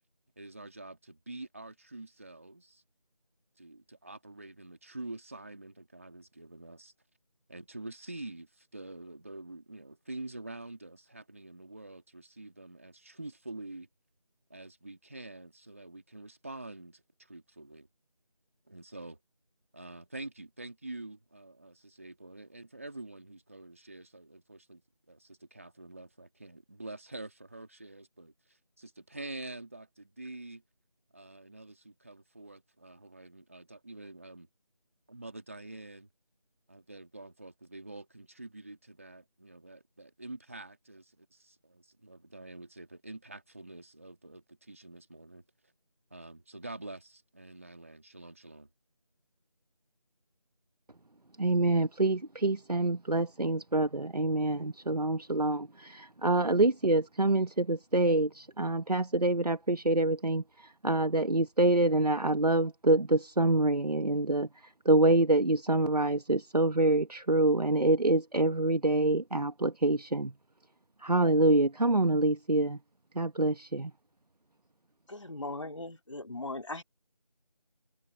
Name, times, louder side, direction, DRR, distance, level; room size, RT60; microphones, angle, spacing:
voice 1, 0.4-2.8 3.6-6.9 7.5-13.9 14.5-17.9 18.7-19.2 19.7-24.8 25.1-30.6 31.1-34.5 35.1-36.1 36.7-45.4 46.1-48.7, right 2 dB, 20° right, 2.4 m, -46 dB
voice 2, 51.4-64.5 64.9-70.3 71.0-72.8 73.2-73.9, right 2 dB, 80° right, 1.7 m, -26 dB
voice 3, 75.1-76.8, left 2 dB, 50° left, 2.6 m, -39 dB
figure-of-eight pair, 180°, 20 cm